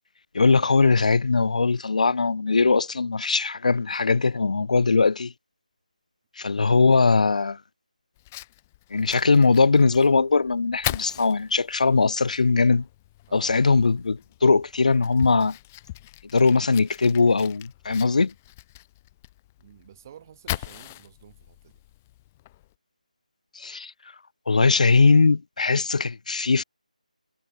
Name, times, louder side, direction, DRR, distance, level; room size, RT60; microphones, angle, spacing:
voice 1, 0.3-5.3 6.4-7.6 8.9-12.9 13.3-15.6 16.3-18.3 23.6-23.9 24.5-26.6, left 4 dB, 65° left, 0.4 m, -20 dB
Fire, 8.2-22.8, left 16 dB, 15° left, 0.6 m, -40 dB
voice 2, 13.3-13.7 19.6-21.8, right 10 dB, 25° right, 3.7 m, -51 dB
figure-of-eight pair, 170°, 4 cm